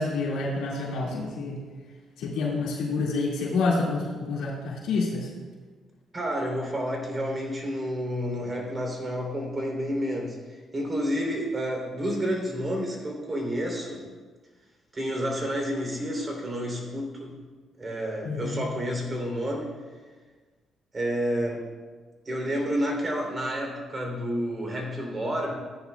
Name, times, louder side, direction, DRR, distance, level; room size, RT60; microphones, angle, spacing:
voice 1, 0.0-1.6 2.2-5.3 18.2-18.6, left 3 dB, 90° left, -4 dB, 1.9 m, -28 dB
voice 2, 6.1-14.0 14.9-17.4 17.8-19.7 20.9-21.6 22.2-25.5, equal, 30° right, 0 dB, 3.1 m, -30 dB
14.5 x 10.0 x 2.3 m, 1.4 s
cardioid pair, 90°, 0 cm